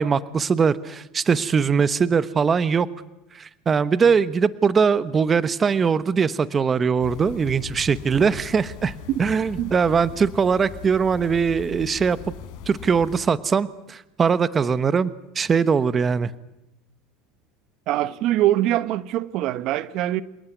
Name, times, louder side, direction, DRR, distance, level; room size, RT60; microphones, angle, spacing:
voice 1, 0.0-2.9 3.3-8.9 9.2-12.2 12.7-16.3, right 6 dB, 25° right, 1.1 m, -21 dB
sound 1, 7.0-13.3, left 9 dB, 65° left, 4.5 m, -39 dB
voice 2, 17.9-20.2, right 14 dB, 55° right, 1.0 m, -23 dB
28.0 x 18.5 x 9.3 m
supercardioid pair, 130°, 0 cm